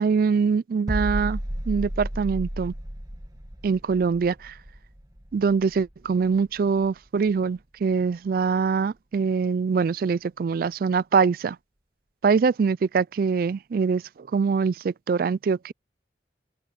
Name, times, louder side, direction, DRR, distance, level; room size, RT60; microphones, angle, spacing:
voice 1, 0.0-1.4 1.7-2.7 3.6-4.5 5.3-11.6 12.2-15.7, right 5 dB, 50° right, 0.3 m, -23 dB
sound 1, 0.9-6.6 6.8-7.1, equal, 20° right, 1.6 m, -33 dB
open air
head